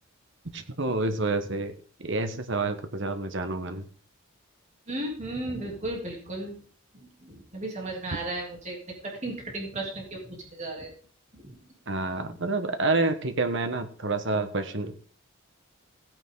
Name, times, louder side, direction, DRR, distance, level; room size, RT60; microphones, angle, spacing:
voice 1, 0.5-1.7 2.0-3.9 11.9-14.9, right 3 dB, 60° right, 8 dB, 1.4 m, -28 dB
voice 2, 4.9-6.5 6.9-10.9 11.3-11.6, right 2 dB, 35° right, -1 dB, 3.2 m, -35 dB
16.5 x 9.2 x 3.9 m, 0.43 s
head